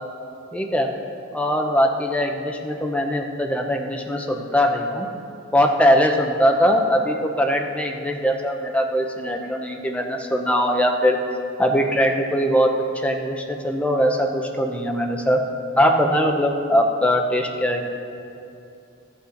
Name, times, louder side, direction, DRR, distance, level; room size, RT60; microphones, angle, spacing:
voice 1, 0.5-0.9 1.3-5.1 5.5-11.2 11.6-15.4 15.8-17.9, equal, 5° left, 2 dB, 0.6 m, -21 dB
13.0 x 8.3 x 3.9 m, 2.7 s
head